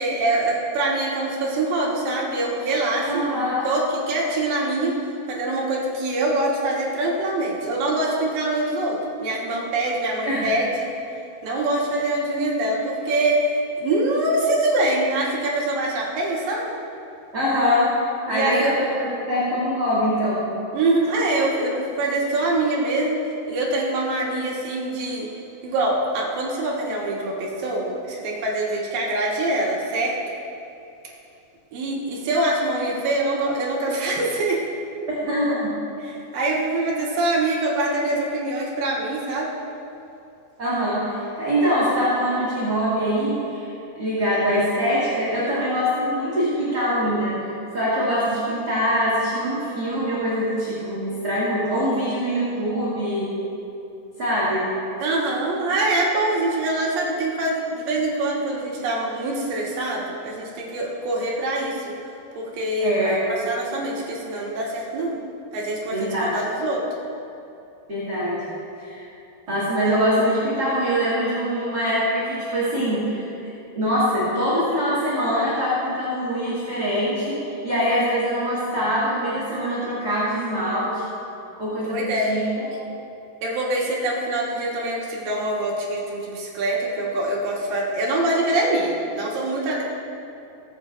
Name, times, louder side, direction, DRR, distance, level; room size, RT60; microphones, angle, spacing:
voice 1, 0.0-3.2 3.6-5.0 5.3-10.9 11.4-16.7 18.3-18.9 20.7-23.2 23.5-25.3 25.6-30.2 31.7-34.6 36.0-39.5 55.0-61.9 62.4-65.2 65.5-66.8 81.9-82.3 83.4-89.8, right 2 dB, 70° right, -3 dB, 3.2 m, -24 dB
voice 2, 3.0-3.7 10.2-10.5 11.5-11.6 17.3-17.9 18.3-20.5 35.1-35.7 40.6-53.3 54.2-54.6 62.8-63.2 65.9-66.3 67.9-68.5 68.8-69.1 69.5-81.0 81.6-82.7, equal, 30° right, -10 dB, 2.3 m, -23 dB
19.0 x 8.7 x 2.6 m, 2.8 s
omnidirectional pair, 4.2 m